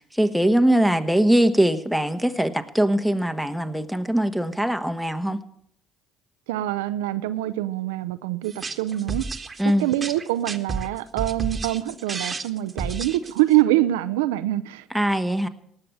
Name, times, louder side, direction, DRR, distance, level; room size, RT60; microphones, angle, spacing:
voice 1, 0.0-5.4 9.6-9.9 14.9-15.5, right 1 dB, ahead, 1.3 m, -21 dB
voice 2, 6.5-9.3 9.8-14.9, right 15 dB, 85° right, 0.5 m, -24 dB
sound 1, 8.4-13.6, right 4 dB, 30° right, 1.5 m, -32 dB
18.5 x 6.9 x 7.6 m
hypercardioid pair, 60°, 0 cm